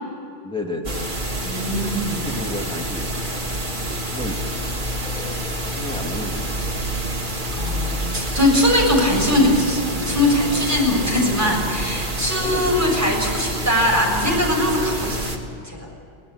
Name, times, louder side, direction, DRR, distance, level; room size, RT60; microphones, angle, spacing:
voice 1, 0.4-1.1 1.9-4.4 4.8-5.4 5.7-7.3 12.4-13.0, left 1 dB, 5° left, -1 dB, 2.9 m, -34 dB
sound 1, 0.8-15.4, right 1 dB, 45° right, 2.4 m, -27 dB
voice 2, 1.4-2.2 7.5-15.9, left 1 dB, 15° right, -2 dB, 6.7 m, -21 dB
24.5 x 18.5 x 8.5 m, 2.5 s
omnidirectional pair, 1.2 m